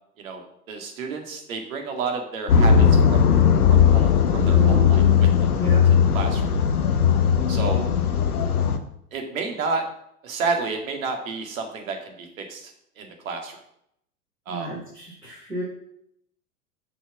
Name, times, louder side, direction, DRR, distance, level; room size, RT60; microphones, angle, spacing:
voice 1, 0.2-3.3 3.7-5.0 5.4-5.5 6.1-6.5 7.5-7.9 9.1-9.8 10.2-12.7 13.0-13.6 14.5-14.7, right 4 dB, 60° right, 3 dB, 2.2 m, -30 dB
sound 1, 2.5-8.8, left 7 dB, 70° left, 1.1 m, -18 dB
voice 2, 4.3-4.9 5.5-5.8 14.5-15.6, right 3 dB, 85° right, -4 dB, 3.0 m, -32 dB
7.8 x 6.3 x 6.2 m, 0.73 s
figure-of-eight pair, 85°, 46 cm